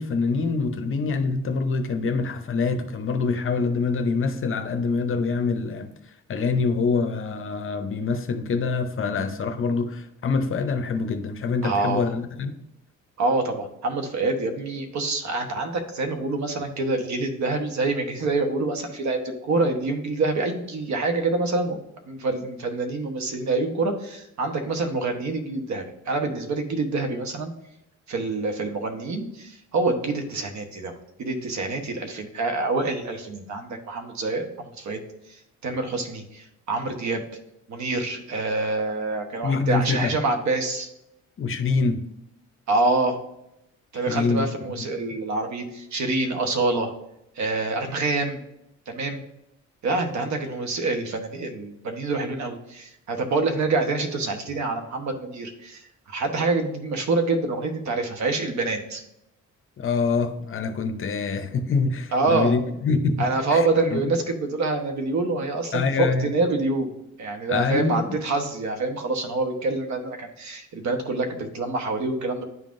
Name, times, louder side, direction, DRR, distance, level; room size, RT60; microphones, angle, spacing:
voice 1, 0.0-5.9 6.3-12.6 39.4-40.1 41.4-42.0 44.1-44.8 59.8-64.0 65.7-66.3 67.5-68.2, left 4 dB, 45° left, 0.7 m, -25 dB
voice 2, 11.6-12.0 13.2-21.8 22.1-27.5 28.1-30.9 31.2-35.0 35.3-37.2 37.7-40.9 42.7-43.2 43.9-46.9 47.4-48.4 48.9-49.2 49.8-59.0 62.1-62.5 63.2-72.4, right 3 dB, 65° right, 1.1 m, -26 dB
10.5 x 3.6 x 2.5 m
cardioid pair, 90°, 30 cm